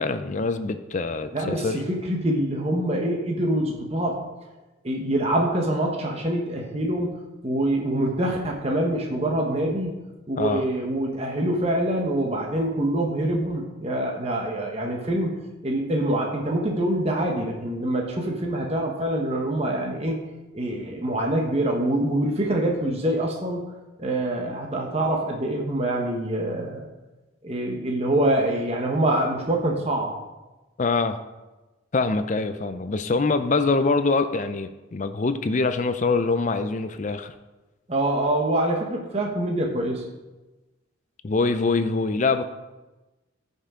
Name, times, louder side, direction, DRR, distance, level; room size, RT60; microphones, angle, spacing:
voice 1, 0.0-1.8 10.4-10.6 30.8-31.2 31.9-37.3 41.2-42.4, left 3 dB, 35° left, 10 dB, 0.4 m, -24 dB
voice 2, 1.3-1.8 2.1-4.2 4.8-7.1 7.4-9.9 10.3-15.3 15.6-20.2 20.5-23.6 24.0-26.8 27.4-30.1 37.9-40.0, right 1 dB, 30° right, 0 dB, 1.1 m, -25 dB
14.5 x 5.5 x 3.7 m, 1.1 s
head